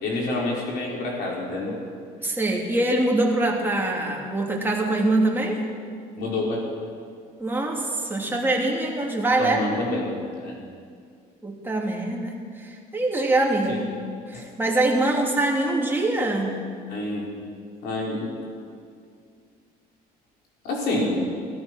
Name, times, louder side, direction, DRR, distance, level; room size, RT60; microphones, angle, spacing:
voice 1, 0.0-1.8 6.2-6.6 9.4-10.1 10.4-10.6 13.7-13.8 14.3-14.4 16.9-17.2 17.8-18.3 20.6-21.2, left 2 dB, 75° left, -3 dB, 4.6 m, -27 dB
voice 2, 2.2-5.6 7.4-9.6 11.4-13.9 14.3-16.7, right 2 dB, 10° right, -1 dB, 2.6 m, -24 dB
16.5 x 13.5 x 6.2 m, 2.2 s
cardioid pair, 110°, 17 cm